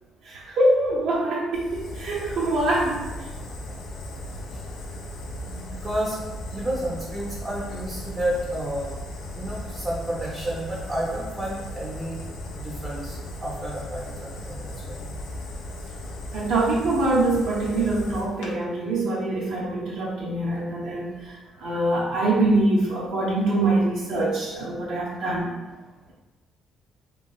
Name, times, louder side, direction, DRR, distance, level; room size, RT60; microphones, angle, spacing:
voice 1, 0.2-3.1 16.3-25.5, right 2 dB, 70° right, -4 dB, 0.5 m, -24 dB
Fire, 1.5-18.5, left 1 dB, 85° left, 0.5 m, -37 dB
voice 2, 4.5-4.8 5.5-6.2 6.5-8.9 9.3-12.2 12.5-15.1, right 1 dB, 20° right, -5 dB, 0.5 m, -31 dB
2.9 x 2.8 x 2.3 m, 1.2 s
cardioid pair, 145°, 0 cm